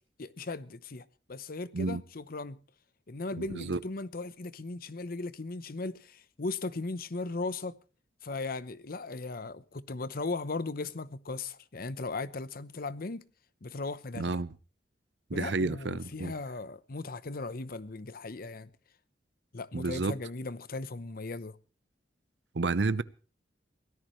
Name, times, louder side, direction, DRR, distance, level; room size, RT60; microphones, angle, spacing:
voice 1, 0.2-2.6 3.1-7.8 8.2-13.2 13.6-14.4 15.3-18.7 19.5-21.6, left 3 dB, 55° left, 0.8 m, -37 dB
voice 2, 3.4-3.8 14.1-14.5 15.3-16.3 19.7-20.2 22.5-23.0, right 3 dB, 80° right, 0.7 m, -30 dB
23.5 x 17.0 x 3.2 m
head